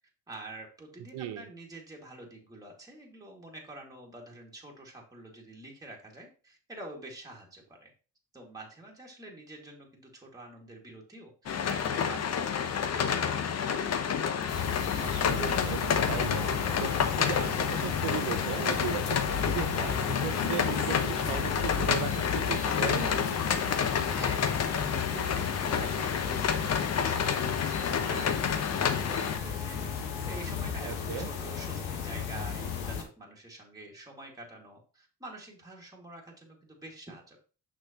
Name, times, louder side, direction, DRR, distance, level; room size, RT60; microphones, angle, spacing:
voice 1, 0.3-7.9 8.3-13.8 24.1-37.4, right 2 dB, 10° right, -2 dB, 2.0 m, -47 dB
voice 2, 1.1-1.5 15.0-16.9 17.2-23.3 30.8-31.3, right 10 dB, 75° right, 10 dB, 1.0 m, -37 dB
sound 1, 11.5-29.4, left 7 dB, 40° left, 0.8 m, -29 dB
sound 2, 14.5-33.0, left 7 dB, 85° left, 1.4 m, -34 dB
6.3 x 6.0 x 2.9 m, 0.36 s
cardioid pair, 90°, 40 cm